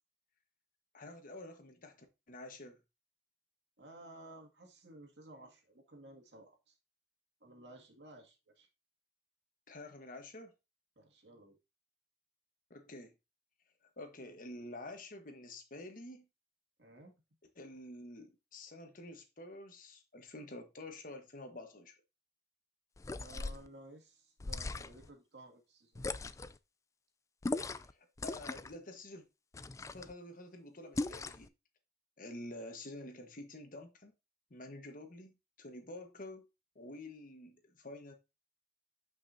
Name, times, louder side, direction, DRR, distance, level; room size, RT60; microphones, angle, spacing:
voice 1, 0.9-2.8 9.7-10.5 12.7-13.1 14.0-16.3 17.6-21.9 27.9-29.2 29.9-31.5 32.2-34.1 34.5-35.3 35.6-36.5 36.7-38.1, left 1 dB, 50° left, 1.4 m, -49 dB
voice 2, 3.8-6.8 7.4-8.7 11.0-11.6 16.8-17.1 23.1-26.0, right 1 dB, 90° right, 2.2 m, -55 dB
sound 1, 23.0-23.7 24.4-25.1 26.0-26.6 27.4-27.9 28.2-28.8 29.5-30.1 31.0-31.5, left 3 dB, 20° left, 0.3 m, -39 dB
8.9 x 5.5 x 2.7 m
head